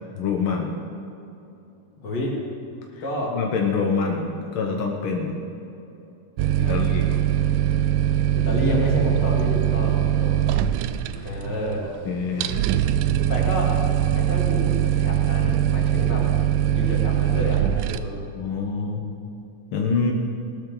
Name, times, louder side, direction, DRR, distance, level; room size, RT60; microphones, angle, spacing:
voice 1, 0.1-0.7 3.3-5.3 6.7-7.2 11.2-11.4 12.0-12.6 18.3-19.1 19.7-20.1, left 5 dB, 65° left, 1 dB, 1.3 m, -26 dB
voice 2, 3.0-3.3 6.4-6.9 8.3-10.4 11.2-11.8 13.1-13.7 14.1-16.2 16.7-17.6 17.8-18.2, left 1 dB, 35° left, -4 dB, 3.1 m, -29 dB
sound 1, 6.4-18.0, right 11 dB, 90° right, 2.2 m, -22 dB
19.0 x 13.0 x 3.9 m, 2.8 s
omnidirectional pair, 3.7 m